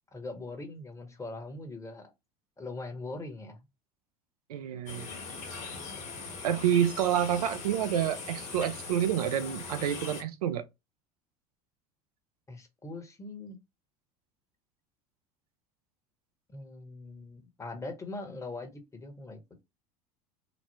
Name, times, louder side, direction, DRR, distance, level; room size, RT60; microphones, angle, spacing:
voice 1, 0.1-2.1 2.6-3.6 12.5-13.6 16.5-19.4, left 2 dB, 15° left, 1.0 m, -41 dB
voice 2, 4.5-5.1 6.4-10.6, right 10 dB, 85° right, 0.5 m, -28 dB
sound 1, 4.9-10.2, left 4 dB, 40° left, 1.3 m, -41 dB
3.0 x 2.0 x 2.9 m
hypercardioid pair, 80°, 19 cm